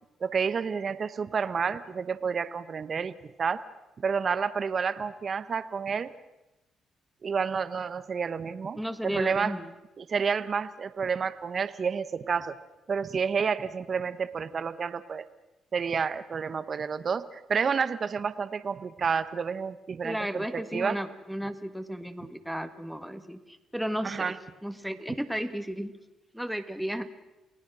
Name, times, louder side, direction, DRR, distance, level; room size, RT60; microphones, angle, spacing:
voice 1, 0.2-3.6 4.0-6.1 7.2-9.5 10.0-12.6 12.9-15.2 15.7-21.0 24.0-24.4, right 6 dB, 45° right, 13 dB, 1.0 m, -30 dB
voice 2, 8.8-9.7 20.0-25.9 26.3-27.1, equal, ahead, 7 dB, 1.7 m, -34 dB
29.0 x 18.0 x 6.2 m, 0.99 s
cardioid pair, 90°, 0 cm